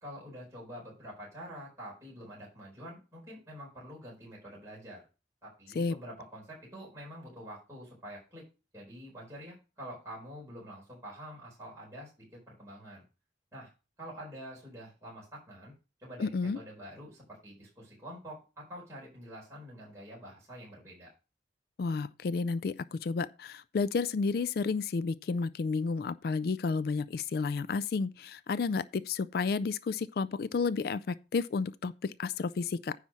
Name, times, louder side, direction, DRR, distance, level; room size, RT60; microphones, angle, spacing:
voice 1, 0.0-5.0 5.4-8.4 8.7-13.0 13.5-13.7 14.0-15.7 16.0-21.1, equal, 15° right, 4.3 m, -47 dB
voice 2, 16.2-16.6 21.8-32.9, left 4 dB, 55° left, 0.3 m, -31 dB
9.8 x 4.3 x 6.0 m
head